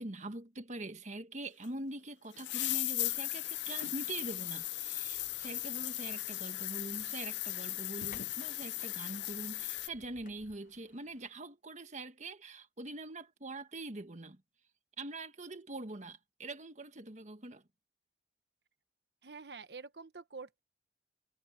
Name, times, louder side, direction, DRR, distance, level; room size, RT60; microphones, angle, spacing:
voice 1, 0.0-14.4 15.0-17.6, right 2 dB, 45° right, 1.5 m, -44 dB
sound 1, 1.6-1.7 2.4-9.9, left 17 dB, 90° left, 0.5 m, -37 dB
sound 2, 5.0-11.3, left 3 dB, 50° left, 0.8 m, -58 dB
voice 2, 19.2-20.6, right 4 dB, 70° right, 1.2 m, -47 dB
head